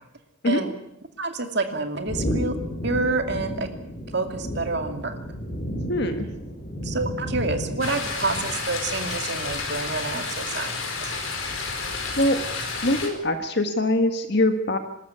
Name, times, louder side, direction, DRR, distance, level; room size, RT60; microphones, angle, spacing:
voice 1, 1.2-2.5 2.8-3.7 4.1-5.2 6.8-10.7 11.0-11.1, right 3 dB, 50° right, 6 dB, 2.6 m, -28 dB
sound 1, 2.1-8.8, equal, 35° left, 4.4 m, -32 dB
voice 2, 5.9-6.2 12.2-12.4 12.8-14.8, left 1 dB, 50° left, 7 dB, 1.6 m, -22 dB
sound 2, 7.8-13.1, left 4 dB, 70° left, 4.8 m, -30 dB
26.0 x 13.0 x 9.6 m, 0.81 s
head